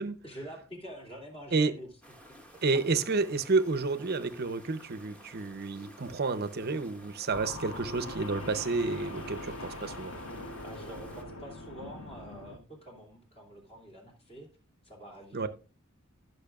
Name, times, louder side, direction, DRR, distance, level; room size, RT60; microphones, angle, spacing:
voice 1, 0.2-1.9 2.7-3.0 10.6-14.5 14.8-15.5, equal, 30° left, 1 dB, 2.7 m, -46 dB
sound 1, 2.0-11.2, equal, 5° left, 1.3 m, -54 dB
voice 2, 2.6-10.1 15.3-15.5, right 3 dB, 50° right, 12 dB, 0.7 m, -30 dB
sound 2, 7.3-12.6, left 1 dB, 90° left, 1.7 m, -42 dB
15.5 x 6.2 x 2.4 m, 0.34 s
head